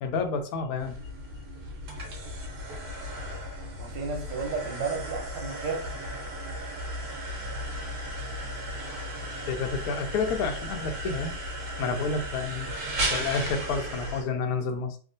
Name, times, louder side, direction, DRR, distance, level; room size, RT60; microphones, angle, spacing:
voice 1, 0.0-1.0 9.5-11.3 11.8-12.7 13.0-15.0, left 4 dB, 70° left, 6 dB, 0.9 m, -29 dB
sound 1, 0.8-14.2, equal, 65° right, 1.4 m, -35 dB
voice 2, 3.8-5.9, right 4 dB, 85° right, 0 dB, 1.4 m, -32 dB
3.5 x 2.3 x 2.5 m, 0.41 s
omnidirectional pair, 1.9 m